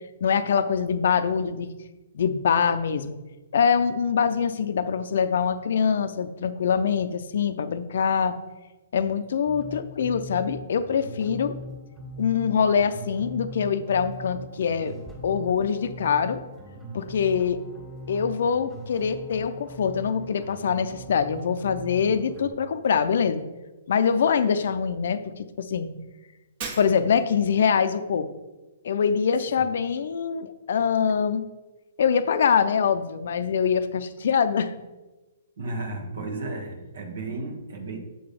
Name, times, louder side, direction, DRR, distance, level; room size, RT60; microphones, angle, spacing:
voice 1, 0.2-1.7 2.1-3.2 3.5-8.4 8.9-11.5 12.2-14.9 15.2-16.4 16.9-17.6 18.1-23.4 23.9-25.9 26.8-28.3 28.8-31.4 32.0-34.7, left 6 dB, 70° left, 11 dB, 0.5 m, -24 dB
sound 1, 9.5-22.5, equal, 10° right, 1.6 m, -41 dB
Shatter, 26.6-27.4, right 5 dB, 45° right, 1.2 m, -37 dB
voice 2, 35.6-38.0, right 2 dB, 70° right, 4 dB, 1.2 m, -33 dB
6.8 x 3.8 x 5.1 m, 1.1 s
hypercardioid pair, 140°, 0 cm